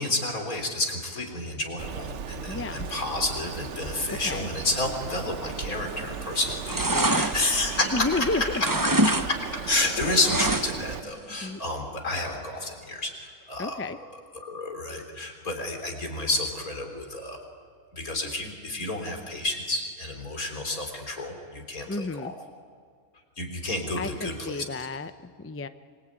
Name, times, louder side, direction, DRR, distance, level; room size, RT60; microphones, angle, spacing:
voice 1, 0.0-8.1 9.1-9.4 9.7-13.8 14.3-17.4 17.9-22.3 23.4-24.6, left 2 dB, 75° left, 3 dB, 4.2 m, -30 dB
Bird, 1.8-11.0, right 7 dB, 60° right, 1.1 m, -37 dB
voice 2, 2.5-2.9 4.1-4.5 6.9-7.2 7.9-8.6 10.0-10.3 11.4-11.6 13.6-14.0 21.9-22.3 24.0-25.7, left 3 dB, 20° left, 11 dB, 0.3 m, -32 dB
sound 1, 5.8-6.2 6.5-8.2 8.5-9.3 9.5-10.9 11.3-11.4, right 2 dB, 20° right, 0.7 m, -25 dB
26.0 x 23.5 x 9.0 m, 2.1 s
omnidirectional pair, 1.5 m